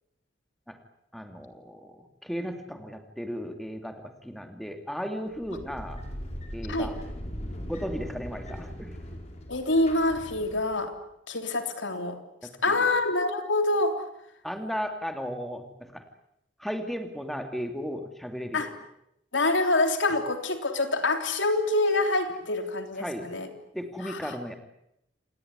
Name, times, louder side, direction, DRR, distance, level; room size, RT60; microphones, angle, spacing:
voice 1, 1.1-6.0 6.5-7.0 7.7-9.0 12.4-12.9 14.4-16.0 16.6-18.7 23.0-23.3 23.7-24.6, equal, ahead, 5 dB, 2.7 m, -35 dB
sound 1, 5.3-10.9, equal, 35° left, 4.9 m, -39 dB
voice 2, 9.5-10.9 11.3-12.2 12.6-13.9 18.5-18.7 19.3-23.5 24.1-24.2, left 2 dB, 90° left, 6 dB, 3.5 m, -26 dB
28.0 x 19.0 x 9.7 m, 0.81 s
head